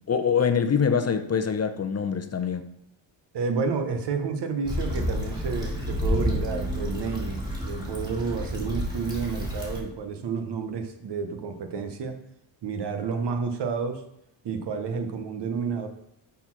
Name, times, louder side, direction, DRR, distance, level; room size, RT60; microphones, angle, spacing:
voice 1, 0.1-2.7, left 6 dB, 35° left, 8 dB, 0.7 m, -24 dB
voice 2, 3.3-12.2 12.6-14.0 14.4-15.9, right 5 dB, 60° right, 7 dB, 1.2 m, -30 dB
Stream / Traffic noise roadway noise / Trickle dribble, 4.7-9.8, equal, 10° right, 2.5 m, -30 dB
6.8 x 4.2 x 5.9 m, 0.80 s
cardioid pair, 85°, 46 cm